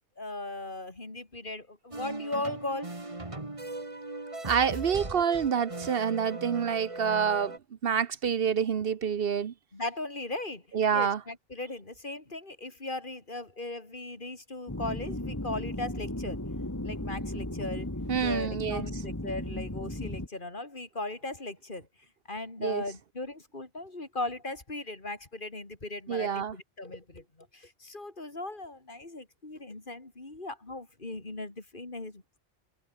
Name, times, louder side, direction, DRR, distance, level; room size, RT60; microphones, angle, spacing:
voice 1, 0.2-2.9 9.7-10.6 10.9-16.4 16.8-17.9 18.2-21.9 22.3-27.2 27.5-32.4, left 2 dB, 50° left, 3.4 m, -38 dB
sound 1, 1.9-7.6, right 2 dB, 30° right, 2.4 m, -39 dB
voice 2, 4.4-7.6 7.8-9.5 10.7-11.2 18.1-18.8 22.6-22.8 26.1-26.5, right 7 dB, 65° right, 1.0 m, -27 dB
sound 2, 14.7-20.3, left 1 dB, 15° left, 2.5 m, -35 dB
omnidirectional pair, 1.1 m